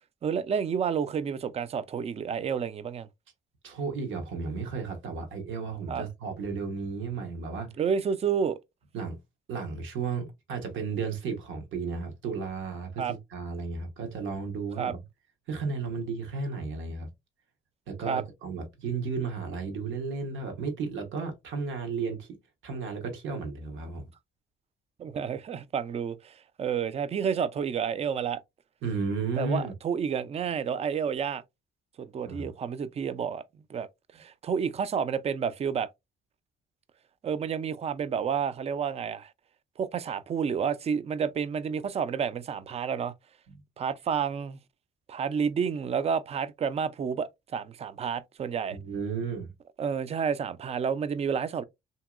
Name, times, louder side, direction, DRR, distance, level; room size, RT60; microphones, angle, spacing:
voice 1, 0.2-3.1 5.9-6.1 7.8-8.6 13.0-13.1 14.8-14.9 18.1-18.2 25.0-28.4 29.4-31.4 32.1-33.4 33.7-33.9 34.1-35.9 37.2-39.3 39.8-43.1 43.8-44.6 45.1-48.8 49.8-51.6, right 7 dB, 30° right, 0.3 m, -30 dB
voice 2, 3.6-7.7 8.9-9.2 9.5-15.0 15.5-17.1 17.9-22.3 22.6-24.1 28.8-29.7 32.3-32.5 43.5-43.6 48.7-49.5, right 4 dB, 80° right, 1.1 m, -33 dB
2.9 x 2.7 x 2.3 m
cardioid pair, 90°, 20 cm